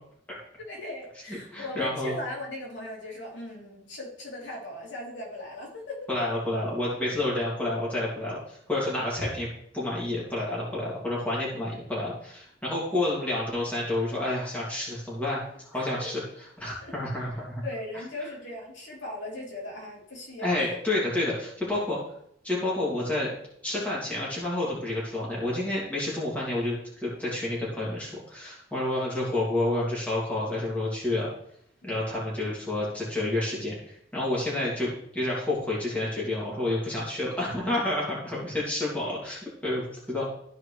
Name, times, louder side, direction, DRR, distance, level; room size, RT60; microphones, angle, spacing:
voice 1, 0.6-6.1 15.7-16.1 16.8-17.3 17.6-20.8 31.8-32.0, left 1 dB, 70° left, -4 dB, 3.3 m, -38 dB
voice 2, 1.5-2.2 6.1-9.5 9.7-16.2 16.6-17.6 20.4-22.0 22.4-23.3 23.6-31.3 31.8-40.2, left 1 dB, 5° left, -6 dB, 2.6 m, -29 dB
14.0 x 4.8 x 3.3 m, 0.69 s
head